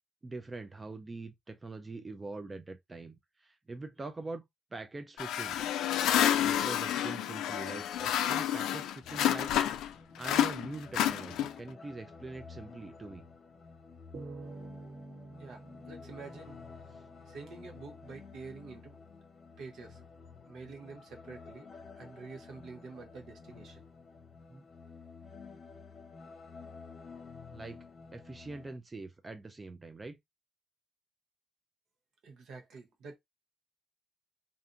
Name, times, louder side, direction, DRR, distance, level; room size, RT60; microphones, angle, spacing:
voice 1, 0.2-4.4 4.7-5.6 6.4-9.5 10.2-13.3 24.5-24.7 27.5-27.8 28.1-30.2, right 3 dB, 25° right, 0.4 m, -43 dB
sound 1, 5.2-9.9 10.2-11.7, left 11 dB, 85° left, 0.3 m, -29 dB
sound 2, 9.0-28.8, left 4 dB, 45° left, 0.8 m, -52 dB
sound 3, 14.1-17.5, right 3 dB, 55° right, 1.2 m, -48 dB
voice 2, 15.9-16.6 17.3-19.0 19.6-20.0 20.5-23.8 32.2-33.2, right 4 dB, 70° right, 0.8 m, -47 dB
2.5 x 2.4 x 2.6 m
cardioid pair, 90°, 0 cm